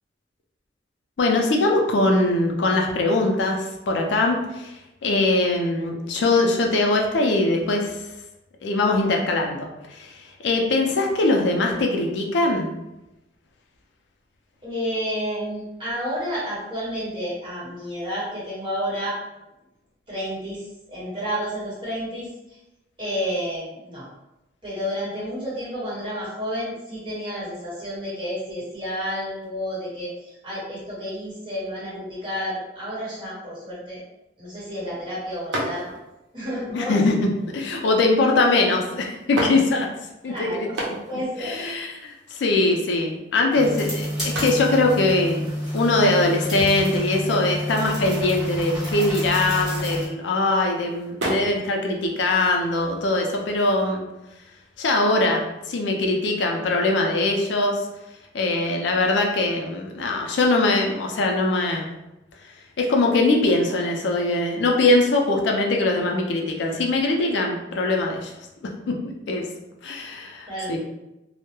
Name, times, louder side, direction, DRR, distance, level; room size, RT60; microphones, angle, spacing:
voice 1, 1.2-8.0 8.6-12.7 36.7-37.3 37.5-39.9 40.2-40.7 41.4-54.0 54.8-57.9 58.3-61.9 62.8-68.3 68.9-69.0 69.3-69.4 69.8-70.8, left 2 dB, 70° left, 1 dB, 0.4 m, -22 dB
voice 2, 14.6-19.2 20.1-20.6 20.9-22.3 23.0-24.1 24.6-34.0 34.4-35.9 36.3-37.0 40.2-40.7 41.1-41.6 70.5-70.8, equal, 30° right, -9 dB, 1.1 m, -30 dB
sound 1, 35.5-36.2 37.0-37.5 38.5-38.6 39.2-40.1 40.6-41.3 41.6-41.7 41.9-42.9 44.2-50.3 50.7-51.6 52.0-53.8, right 1 dB, 80° right, 0.6 m, -33 dB
sound 2, 43.6-50.1, equal, ahead, 1.1 m, -29 dB
2.2 x 2.0 x 2.9 m, 0.96 s
head